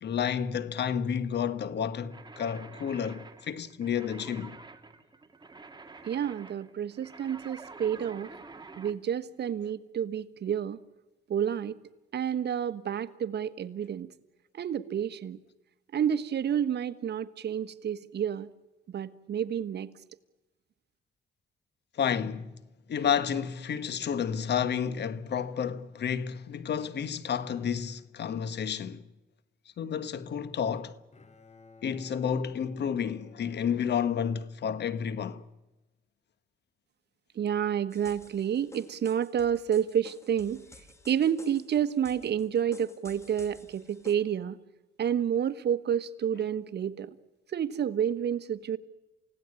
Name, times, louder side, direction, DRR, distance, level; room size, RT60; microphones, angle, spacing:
voice 1, 0.0-4.6 22.0-22.5 22.9-29.0 29.8-30.9 31.8-35.4, left 7 dB, 60° left, 1.4 m, -31 dB
sound 1, 2.1-9.0, right 3 dB, 20° right, 2.2 m, -48 dB
voice 2, 6.0-8.3 8.8-10.8 11.3-11.7 12.1-14.1 14.5-15.4 15.9-18.5 18.9-19.9 37.3-40.6 41.1-44.6 45.0-47.1 47.5-48.8, right 9 dB, 55° right, 1.4 m, -29 dB
Bowed string instrument, 30.7-34.9, left 4 dB, 35° left, 2.4 m, -57 dB
sound 2, 37.9-44.2, left 1 dB, 15° left, 2.4 m, -53 dB
29.0 x 17.5 x 9.8 m
cardioid pair, 90°, 20 cm